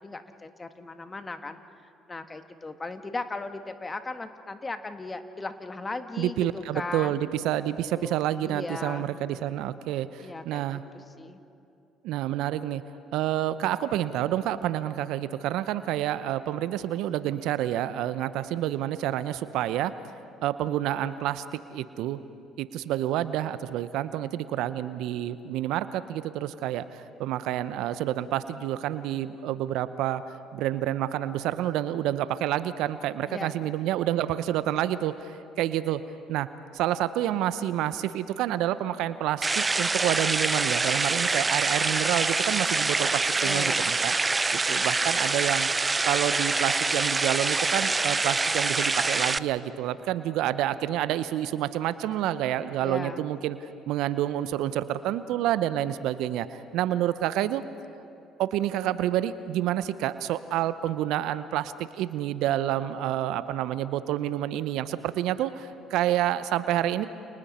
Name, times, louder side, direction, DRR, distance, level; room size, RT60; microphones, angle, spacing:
voice 1, 0.0-1.6 2.1-7.2 7.9-9.6 10.2-10.7 10.9-11.4 33.3-33.5 43.4-43.9 52.8-53.2, left 3 dB, 25° left, 8 dB, 1.6 m, -37 dB
voice 2, 6.2-10.8 12.0-12.8 13.1-19.9 20.4-22.2 22.6-30.2 30.5-36.0 36.3-36.5 36.7-44.1 44.5-45.7 46.0-53.6 53.9-57.6 58.4-67.1, right 12 dB, 70° right, 14 dB, 0.7 m, -28 dB
sound 1, 39.4-49.4, right 3 dB, 25° right, 0.6 m, -25 dB
30.0 x 29.5 x 4.3 m, 2.6 s
hypercardioid pair, 55°, 0 cm